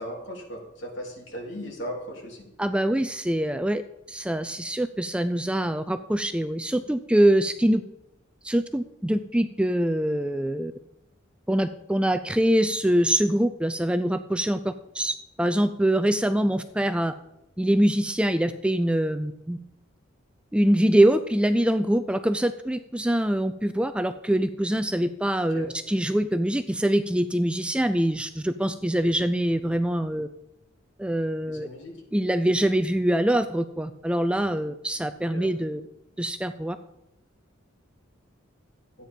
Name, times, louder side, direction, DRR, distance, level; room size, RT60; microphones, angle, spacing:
voice 1, 0.0-2.5 25.5-25.7 31.5-31.9 35.3-35.5, equal, 60° left, 0 dB, 3.0 m, -37 dB
voice 2, 2.6-3.8 4.1-7.8 8.4-10.7 11.5-17.1 17.6-19.6 20.5-30.3 31.0-31.7 32.1-35.8 36.2-36.8, right 1 dB, 5° right, 11 dB, 0.3 m, -24 dB
12.5 x 8.9 x 5.3 m, 0.87 s
head